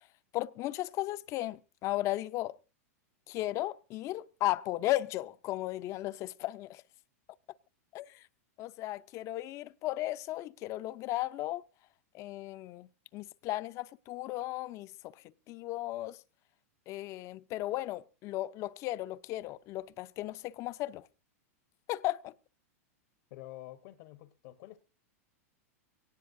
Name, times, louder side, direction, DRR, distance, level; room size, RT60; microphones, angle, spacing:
voice 1, 0.3-2.6 3.3-6.8 7.9-8.3 8.6-11.6 12.1-16.2 16.9-21.1 21.9-22.3, left 16 dB, 40° left, 0.6 m, -35 dB
voice 2, 23.3-24.8, left 15 dB, 55° left, 1.1 m, -48 dB
22.5 x 18.0 x 2.7 m
hypercardioid pair, 125°, 8 cm